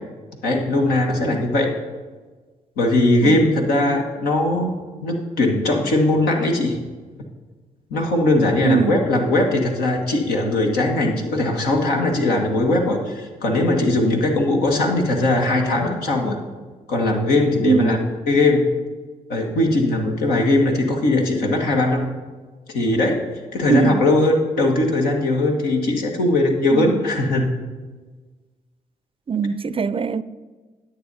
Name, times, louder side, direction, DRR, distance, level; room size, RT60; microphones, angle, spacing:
voice 1, 0.4-1.7 2.8-4.7 5.0-6.8 7.9-16.4 16.9-18.0 18.3-18.7 19.3-22.1 22.7-23.2 23.5-27.5, left 2 dB, 90° left, 1.3 m, -19 dB
voice 2, 3.2-3.5 8.6-9.0 17.6-18.0 23.7-24.1 26.7-27.1 29.3-30.2, right 5 dB, 35° right, 0.4 m, -21 dB
10.0 x 8.0 x 4.0 m
supercardioid pair, 50°, 16 cm